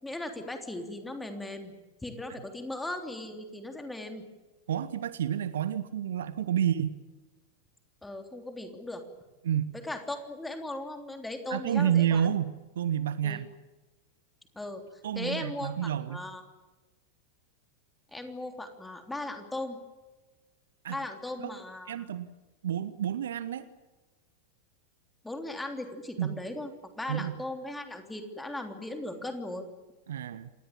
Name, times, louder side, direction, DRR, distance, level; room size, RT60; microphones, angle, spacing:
voice 1, 0.0-1.7 2.0-4.2 8.0-9.0 9.7-12.3 13.2-13.4 14.5-14.8 15.1-16.4 18.1-19.8 20.9-22.1 25.2-29.7, left 1 dB, 5° left, 6 dB, 3.3 m, -38 dB
voice 2, 4.7-7.0 9.4-9.7 11.5-13.5 15.0-16.2 20.8-21.0 21.5-21.6 21.9-22.3 22.6-23.7 26.2-26.4 27.1-27.3 30.1-30.5, right 9 dB, 60° right, 15 dB, 1.0 m, -29 dB
27.5 x 19.5 x 9.0 m, 1.2 s
figure-of-eight pair, 90°, 0 cm